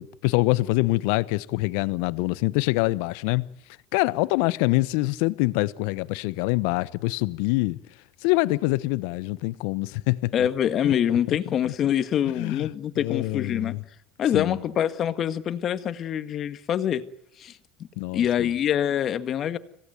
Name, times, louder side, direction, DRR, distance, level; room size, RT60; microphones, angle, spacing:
voice 1, 0.0-3.4 3.9-7.8 8.2-10.5 10.8-10.9 11.3-11.4 12.4-12.7 13.0-13.8 14.3-14.6 18.0-18.5, left 21 dB, 70° left, 0.9 m, -25 dB
voice 2, 10.3-13.8 14.2-17.0 17.4-17.6 18.1-19.6, left 9 dB, 50° left, 1.8 m, -25 dB
26.0 x 17.5 x 9.3 m
hypercardioid pair, 70°, 0 cm